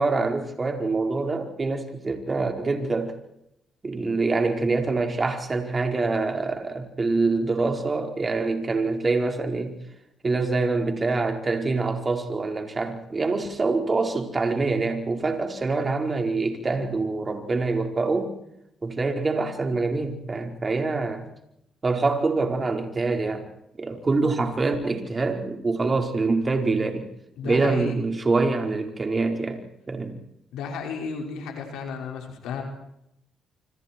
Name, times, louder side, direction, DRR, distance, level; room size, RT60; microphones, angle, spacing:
voice 1, 0.0-3.2 3.8-9.7 10.2-18.3 18.8-21.2 21.8-23.5 23.8-27.1 27.4-29.6 29.9-30.1, right 3 dB, 30° right, 4.8 m, -25 dB
voice 2, 27.4-28.0 30.5-32.6, left 5 dB, 90° left, 5.6 m, -33 dB
29.0 x 26.0 x 4.7 m
cardioid pair, 90°, 0 cm